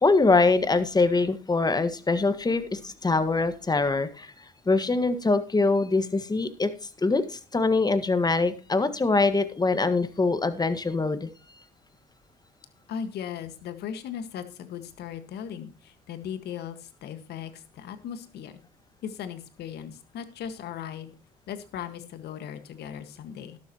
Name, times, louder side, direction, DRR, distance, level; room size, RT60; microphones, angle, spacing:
voice 1, 0.0-6.7 7.0-11.3, left 3 dB, 20° left, 11 dB, 1.7 m, -23 dB
voice 2, 12.9-18.6 19.0-21.1 21.5-23.6, left 8 dB, 65° left, 10 dB, 1.8 m, -38 dB
12.5 x 12.5 x 3.0 m, 0.33 s
hypercardioid pair, 65°, 18 cm